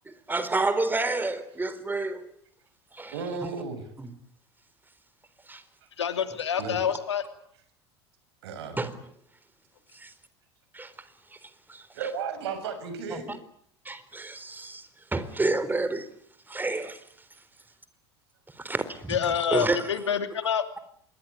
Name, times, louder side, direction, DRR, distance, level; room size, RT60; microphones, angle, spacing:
voice 1, 0.1-2.3 2.9-3.1 3.4-3.5 4.0-4.1 5.5-5.6 8.8-9.0 9.9-10.1 10.7-10.9 11.7-11.9 13.1-13.4 13.8-16.1 16.5-17.0 18.6-19.2 19.5-19.8, right 2 dB, 15° right, 4.0 m, -29 dB
voice 2, 3.1-3.8 6.6-6.8 8.4-8.8 11.9-13.3, right 5 dB, 70° right, 6.5 m, -34 dB
voice 3, 6.0-7.2 19.1-20.6, left 8 dB, 80° left, 2.9 m, -27 dB
26.5 x 22.5 x 9.6 m
figure-of-eight pair, 75°, 14 cm